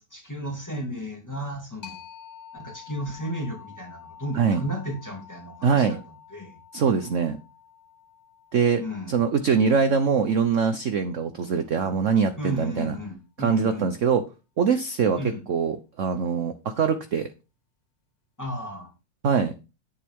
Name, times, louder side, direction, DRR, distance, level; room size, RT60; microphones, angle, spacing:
voice 1, 0.0-2.0 2.5-6.0 6.3-6.6 8.8-9.2 12.4-13.9 15.2-15.4 18.4-18.9, equal, 10° left, 1 dB, 2.5 m, -34 dB
sound 1, 1.8-11.2, left 8 dB, 35° left, 0.6 m, -49 dB
voice 2, 5.6-6.0 6.7-7.4 8.5-8.8 9.1-12.9 13.4-14.2 14.6-15.2 15.5-17.3 19.2-19.5, right 6 dB, 50° right, 9 dB, 1.0 m, -23 dB
10.5 x 8.2 x 3.6 m, 0.29 s
omnidirectional pair, 2.1 m